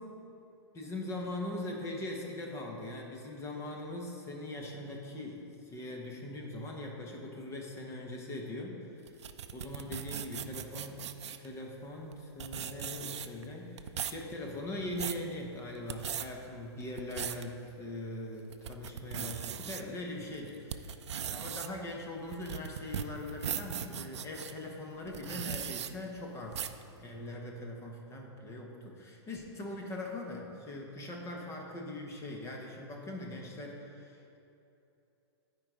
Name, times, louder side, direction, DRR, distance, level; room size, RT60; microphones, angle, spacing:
voice 1, 0.7-8.8 9.5-11.1 11.4-34.4, left 1 dB, 20° left, 0 dB, 1.2 m, -41 dB
sound 1, 9.1-11.5 12.1-12.2 12.4-13.4 13.8-14.2 14.7-15.2 15.8-16.3 16.8-17.4 17.9-18.0 18.5-19.8 20.3-24.5 25.1-25.9 26.5-26.8, right 9 dB, 80° right, 0.5 m, -38 dB
12.0 x 4.8 x 5.1 m, 2.8 s
hypercardioid pair, 135°, 14 cm